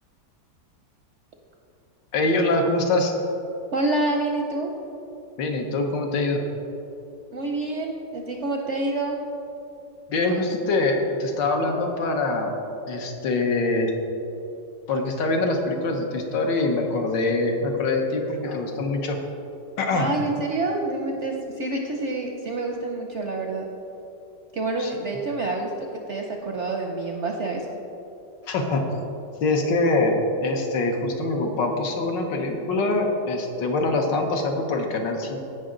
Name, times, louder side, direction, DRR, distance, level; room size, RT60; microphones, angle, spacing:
voice 1, 2.1-3.1 5.4-6.4 10.1-12.5 12.9-13.9 14.9-19.2 19.8-20.1 24.8-24.9 28.5-28.8 29.4-35.4, left 2 dB, 80° left, 3 dB, 1.7 m, -24 dB
voice 2, 3.7-4.7 7.3-9.2 19.9-23.6 24.5-27.7, right 2 dB, 65° right, 2 dB, 0.7 m, -27 dB
16.0 x 5.5 x 3.8 m, 2.8 s
omnidirectional pair, 1.9 m